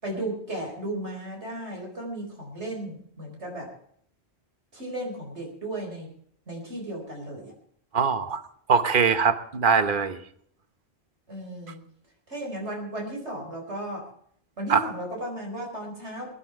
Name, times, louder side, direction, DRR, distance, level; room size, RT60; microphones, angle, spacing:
voice 1, 0.0-3.7 4.7-6.1 6.5-7.5 11.3-11.8 12.3-14.1 14.6-16.3, right 1 dB, 85° right, 1 dB, 4.8 m, -35 dB
voice 2, 7.9-8.4 8.7-10.2 14.7-14.9, right 6 dB, 50° right, 11 dB, 1.3 m, -22 dB
21.5 x 10.0 x 4.7 m, 0.64 s
omnidirectional pair, 1.1 m